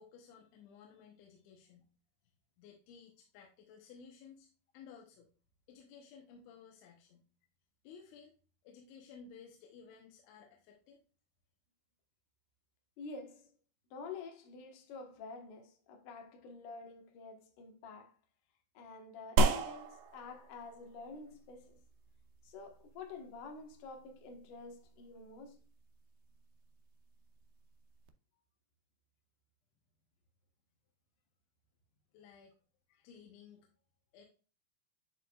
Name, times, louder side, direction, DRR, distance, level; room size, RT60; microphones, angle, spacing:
voice 1, 0.0-1.9 2.6-4.5 4.7-5.3 5.7-7.3 7.8-8.3 8.6-11.0 32.1-32.5 33.0-33.7 34.1-34.3, left 6 dB, 80° left, 3.3 m, -56 dB
voice 2, 13.0-13.5 13.9-18.1 18.7-21.8 22.4-25.6, left 4 dB, 65° left, 2.2 m, -49 dB
sound 1, 19.4-28.1, right 3 dB, 80° right, 2.5 m, -38 dB
10.5 x 4.6 x 2.3 m
omnidirectional pair, 5.3 m